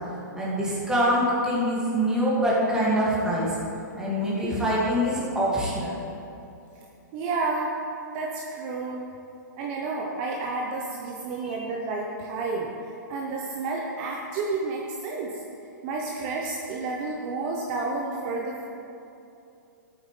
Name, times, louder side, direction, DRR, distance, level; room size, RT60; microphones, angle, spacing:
voice 1, 0.3-3.6 4.0-6.0 11.4-11.5, equal, 5° right, -7 dB, 2.3 m, -24 dB
voice 2, 7.1-7.7 8.1-9.1 9.6-15.3 15.8-18.6, right 3 dB, 35° right, -1 dB, 0.9 m, -30 dB
13.0 x 8.8 x 3.3 m, 2.7 s
hypercardioid pair, 145°, 10 cm